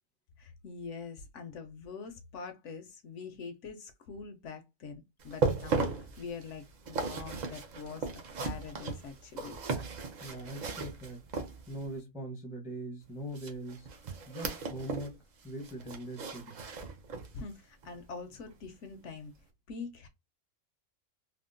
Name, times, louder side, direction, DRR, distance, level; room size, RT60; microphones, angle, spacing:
voice 1, 0.4-8.1 8.4-9.6 17.3-19.3 19.7-20.1, left 5 dB, 70° left, 0.8 m, -44 dB
sound 1, 5.2-11.9 13.3-15.2 15.4-17.4 17.8-18.0 18.5-18.6, right 4 dB, 55° right, 0.4 m, -36 dB
voice 2, 10.2-11.2 11.7-13.9 14.3-15.2 15.4-16.7, right 1 dB, 5° right, 0.5 m, -41 dB
3.5 x 2.0 x 2.5 m
omnidirectional pair, 1.4 m